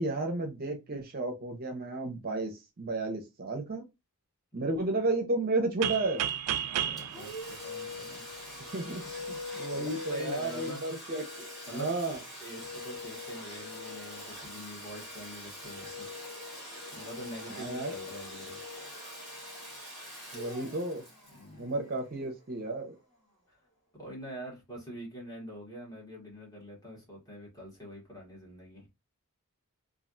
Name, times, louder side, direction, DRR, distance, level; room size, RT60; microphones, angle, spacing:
voice 1, 0.0-3.8 4.5-6.3 8.7-9.0 9.6-11.5 11.7-12.2 17.5-17.9 20.3-21.0 21.6-22.9, right 2 dB, 45° right, 0.6 m, -32 dB
sound 1, 5.8-8.6, right 10 dB, 85° right, 0.3 m, -33 dB
voice 2, 6.6-8.3 8.8-10.8 11.7-11.9 12.4-16.1 16.9-18.6 21.3-21.8 23.5-23.6 23.9-28.9, equal, 15° left, 1.5 m, -45 dB
Domestic sounds home sounds, 7.0-22.4, left 2 dB, ahead, 1.6 m, -42 dB
3.1 x 2.5 x 2.5 m
head